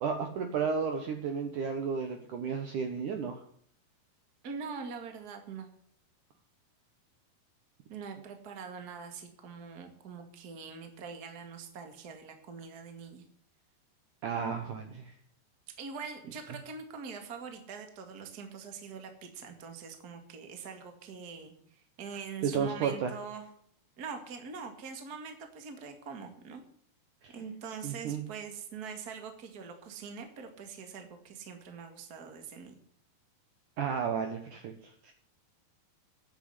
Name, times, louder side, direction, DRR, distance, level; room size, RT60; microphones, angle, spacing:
voice 1, 0.0-3.4 14.2-15.1 22.4-23.1 27.2-27.4 27.8-28.2 33.8-34.7 35.0-35.1, right 6 dB, 65° right, 5 dB, 2.2 m, -33 dB
voice 2, 4.4-5.7 7.9-13.3 15.8-23.5 24.0-26.6 27.3-32.8, right 5 dB, 35° right, 5 dB, 1.7 m, -43 dB
11.0 x 8.1 x 8.1 m, 0.62 s
omnidirectional pair, 4.8 m